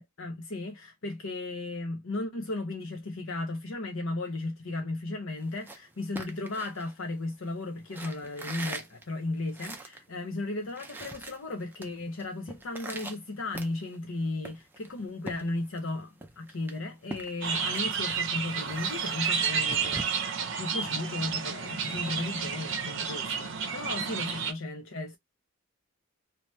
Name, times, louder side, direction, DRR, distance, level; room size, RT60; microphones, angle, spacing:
voice 1, 0.0-25.2, left 2 dB, 60° left, 0.6 m, -35 dB
sound 1, 5.4-7.4 7.9-10.1 10.4-10.5 10.7-11.9 12.2-14.1 14.4-15.9 16.2-20.0, right 2 dB, 10° right, 0.4 m, -43 dB
sound 2, 17.4-24.5, right 6 dB, 55° right, 0.6 m, -31 dB
2.8 x 2.2 x 3.1 m
head